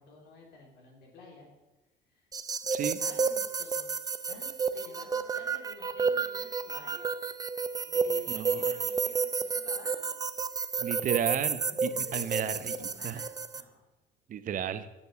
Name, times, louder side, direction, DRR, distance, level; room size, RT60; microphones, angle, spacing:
voice 1, 0.0-1.5 2.1-2.3 3.0-7.1 7.8-10.1 11.7-13.8, left 3 dB, 80° left, 0 dB, 3.4 m, -52 dB
sound 1, 2.3-13.6, right 5 dB, 20° right, 0.5 m, -31 dB
voice 2, 8.3-8.7 10.8-13.2 14.3-14.9, right 9 dB, 50° right, 11 dB, 0.8 m, -33 dB
9.6 x 6.9 x 6.8 m, 1.1 s
cardioid pair, 110°, 17 cm